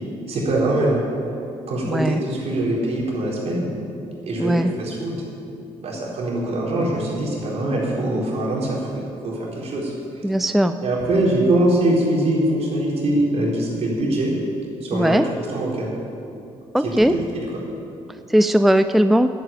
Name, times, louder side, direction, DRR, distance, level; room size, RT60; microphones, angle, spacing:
voice 1, 0.3-1.0 1.7-3.7 4.2-5.2 5.8-9.9 10.8-14.3 14.8-15.2 15.5-15.9 16.8-17.4, right 1 dB, 65° right, -3 dB, 4.2 m, -23 dB
voice 2, 1.8-2.2 4.4-4.7 10.2-10.8 14.9-15.3 16.7-17.1 18.3-19.3, equal, ahead, 10 dB, 0.4 m, -18 dB
11.0 x 9.5 x 8.9 m, 2.7 s
cardioid pair, 85°, 12 cm